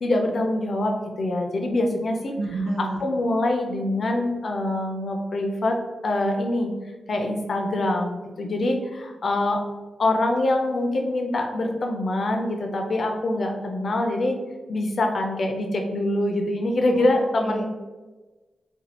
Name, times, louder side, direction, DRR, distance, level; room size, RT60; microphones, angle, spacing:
voice 1, 0.0-2.3 2.8-5.8 6.0-6.7 7.1-9.6 10.0-14.4 14.7-17.6, left 1 dB, 55° left, 3 dB, 0.5 m, -24 dB
voice 2, 2.4-3.0 17.0-17.6, right 2 dB, 90° right, 0 dB, 0.4 m, -30 dB
2.5 x 2.3 x 4.1 m, 1.2 s
wide cardioid pair, 105°, 0 cm